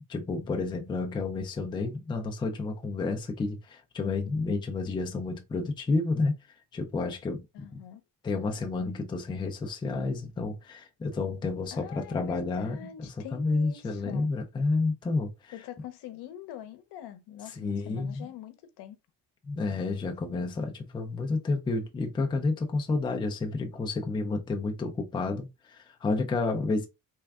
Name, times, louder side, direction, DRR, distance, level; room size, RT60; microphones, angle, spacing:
voice 1, 0.1-6.3 6.7-7.4 8.2-12.9 13.3-15.5 17.6-18.3 19.5-26.8, left 3 dB, 15° left, 0.4 m, -30 dB
voice 2, 7.5-8.0 11.7-14.3 15.5-19.0, left 10 dB, 85° left, 0.7 m, -44 dB
3.4 x 2.2 x 3.5 m
cardioid pair, 165°, 39 cm